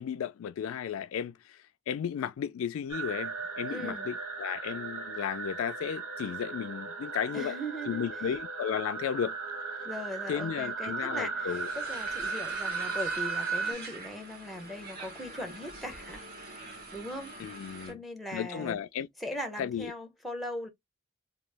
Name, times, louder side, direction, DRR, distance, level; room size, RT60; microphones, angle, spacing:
voice 1, 0.0-1.6 1.9-7.5 7.9-9.4 10.3-11.7 13.7-13.8 17.4-18.0 18.3-19.1 19.6-19.9, left 8 dB, 85° left, 0.3 m, -34 dB
sound 1, 2.9-13.7, right 4 dB, 90° right, 1.2 m, -36 dB
voice 2, 3.7-4.1 7.3-8.1 9.8-16.2 16.9-17.3 17.9-18.8 19.2-20.7, equal, ahead, 0.6 m, -39 dB
sound 2, 11.5-17.9, right 2 dB, 45° right, 1.1 m, -44 dB
2.9 x 2.3 x 3.2 m
head